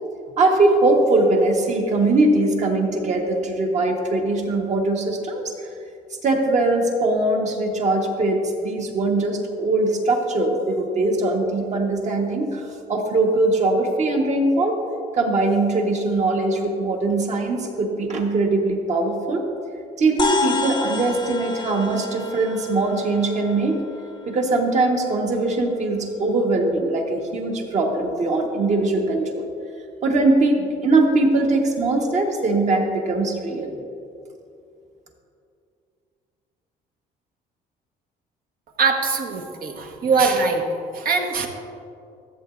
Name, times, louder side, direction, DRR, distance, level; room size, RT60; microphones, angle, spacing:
voice 1, 0.4-5.4 6.2-14.8 15.1-19.5 20.0-23.8 24.2-29.5 30.0-33.8, right 2 dB, 45° right, 1 dB, 1.4 m, -21 dB
sound 1, 20.2-24.8, left 3 dB, 25° left, 0.7 m, -30 dB
voice 2, 38.8-40.6 40.9-41.5, right 4 dB, 60° right, 3 dB, 1.2 m, -22 dB
14.5 x 8.1 x 2.6 m, 2.5 s
cardioid pair, 110°, 17 cm